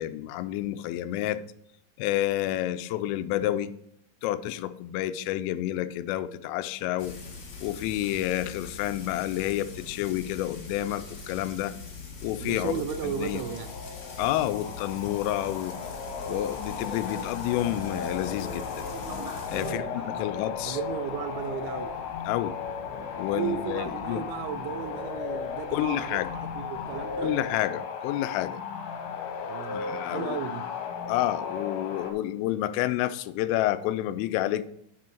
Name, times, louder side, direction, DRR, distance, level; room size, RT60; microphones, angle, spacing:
voice 1, 0.0-1.4 2.0-3.7 4.2-7.1 7.6-11.7 12.2-13.4 14.2-15.7 16.3-18.9 19.5-20.8 22.3-22.5 23.2-24.2 25.7-26.3 27.2-28.6 29.7-30.4 31.1-34.6, left 14 dB, 90° left, 13 dB, 3.1 m, -29 dB
Frying (food), 7.0-19.7, left 4 dB, 45° left, 2.6 m, -42 dB
voice 2, 12.4-13.7 19.5-20.3 20.6-21.9 23.3-27.3 29.4-29.8 30.1-30.6, right 8 dB, 85° right, 9 dB, 2.9 m, -35 dB
sound 1, 12.9-32.1, left 6 dB, 70° left, 3.2 m, -36 dB
sound 2, 15.7-27.5, right 1 dB, 15° right, 1.2 m, -45 dB
9.0 x 6.2 x 4.4 m, 0.73 s
omnidirectional pair, 5.6 m